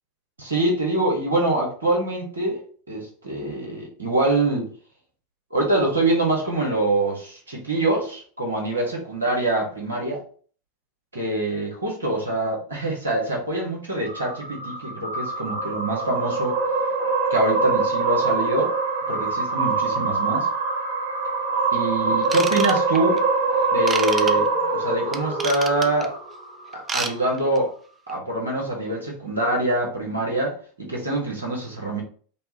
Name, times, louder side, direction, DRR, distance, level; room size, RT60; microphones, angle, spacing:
voice 1, 0.4-2.6 2.9-4.7 5.5-10.2 11.1-16.6 17.3-18.7 19.1-20.5 21.7-23.2 23.7-26.1 26.7-27.7 28.1-32.0, right 2 dB, 85° right, -2 dB, 1.6 m, -24 dB
sound 1, 14.0-26.5, right 4 dB, 65° right, 1.2 m, -24 dB
Ratchet pawl / Tools, 22.2-23.2 23.9-24.3 25.1-26.0 26.7-27.1 27.4-27.6 28.1-28.2, right 5 dB, 25° right, 0.6 m, -29 dB
5.2 x 2.4 x 2.9 m, 0.43 s
figure-of-eight pair, 85°, 0 cm